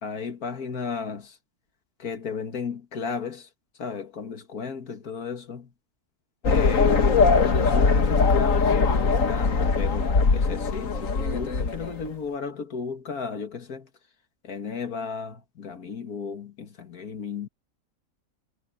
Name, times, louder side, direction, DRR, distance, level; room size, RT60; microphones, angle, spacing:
voice 1, 0.0-1.4 2.0-3.5 3.8-5.7 6.5-13.9 14.4-17.5, left 5 dB, 85° left, 2.3 m, -34 dB
sound 1, 6.4-12.1, left 4 dB, 65° left, 2.0 m, -21 dB
omnidirectional pair, 1.5 m